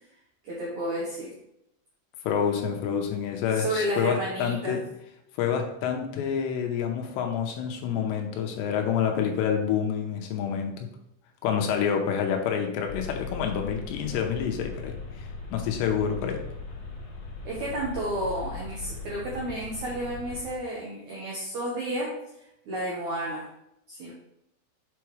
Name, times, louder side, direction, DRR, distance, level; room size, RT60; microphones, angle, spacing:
voice 1, 0.4-1.3 3.6-4.8 17.4-22.1 22.7-23.5 23.9-24.1, right 1 dB, 80° right, -4 dB, 1.6 m, -31 dB
voice 2, 2.2-4.8 5.4-10.9 11.4-16.4, left 7 dB, 90° left, 3 dB, 2.9 m, -28 dB
sound 1, 12.9-20.6, left 3 dB, 65° left, 2.4 m, -39 dB
7.0 x 4.7 x 3.2 m, 0.81 s
omnidirectional pair, 4.9 m